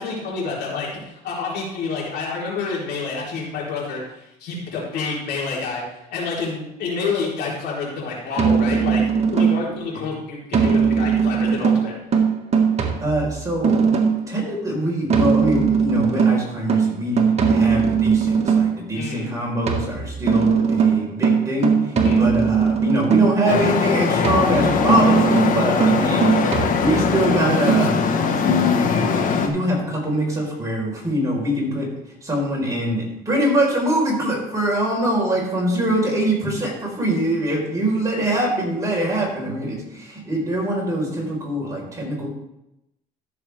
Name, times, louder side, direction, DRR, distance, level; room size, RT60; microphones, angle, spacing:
voice 1, 0.0-5.8 6.1-11.9 18.9-19.3 22.0-22.3 25.9-26.4 26.7-26.9, left 4 dB, 75° left, -4 dB, 3.9 m, -28 dB
sound 1, 8.4-9.8 10.5-14.3 15.1-18.8 19.7-23.5 24.2-27.2 27.7-27.8, right 6 dB, 40° right, 1.6 m, -19 dB
voice 2, 12.8-13.8 14.3-17.2 17.5-26.4 26.8-29.0 29.4-31.9 32.2-42.3, right 1 dB, 20° right, -2 dB, 4.3 m, -23 dB
Traffic noise roadway noise, 23.5-29.5, left 5 dB, 55° left, 1.3 m, -21 dB
14.0 x 7.1 x 3.5 m, 0.85 s
cardioid pair, 110°, 17 cm